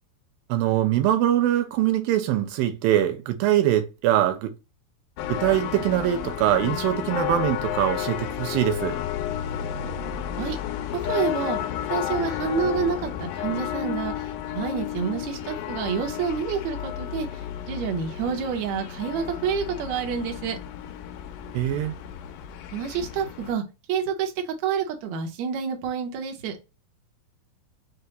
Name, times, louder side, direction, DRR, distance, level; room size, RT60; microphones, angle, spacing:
voice 1, 0.5-4.5 5.3-9.0 21.5-21.9, right 12 dB, 85° right, 2.5 m, -23 dB
sound 1, 5.2-23.5, left 11 dB, 80° left, 2.0 m, -32 dB
voice 2, 10.9-11.6 11.9-20.6 22.7-26.6, right 6 dB, 65° right, 2.0 m, -28 dB
5.6 x 2.2 x 3.9 m
omnidirectional pair, 4.1 m